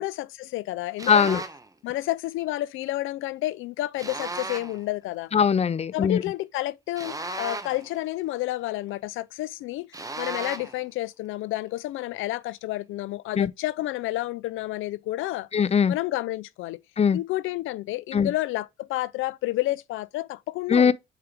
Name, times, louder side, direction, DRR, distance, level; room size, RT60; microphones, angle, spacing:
voice 1, 0.0-1.3 1.8-5.3 5.9-15.5 15.9-16.8 17.1-20.9, left 16 dB, 85° left, 0.4 m, -30 dB
sound 1, 1.0-1.7 4.0-4.8 7.0-7.9 9.9-10.8, right 2 dB, 15° right, 1.0 m, -35 dB
voice 2, 1.1-1.4 5.3-6.2 13.3-13.5 15.5-15.9 17.0-17.2 18.1-18.3 20.7-20.9, left 7 dB, 30° left, 0.6 m, -20 dB
4.7 x 4.7 x 5.1 m
cardioid pair, 90°, 20 cm